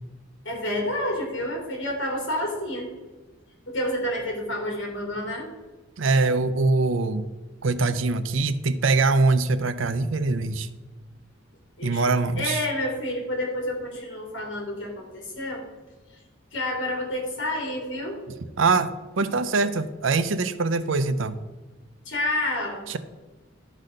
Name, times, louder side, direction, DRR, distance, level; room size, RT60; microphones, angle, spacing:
voice 1, 0.4-2.9 3.7-5.5 11.8-12.0 12.3-15.6 16.1-16.2 16.5-18.2 22.0-22.9, left 1 dB, 70° left, 0 dB, 3.1 m, -29 dB
voice 2, 6.0-7.3 7.6-10.7 11.8-12.6 18.6-21.4, right 3 dB, 80° right, 13 dB, 0.6 m, -23 dB
11.5 x 4.1 x 6.4 m, 1.2 s
head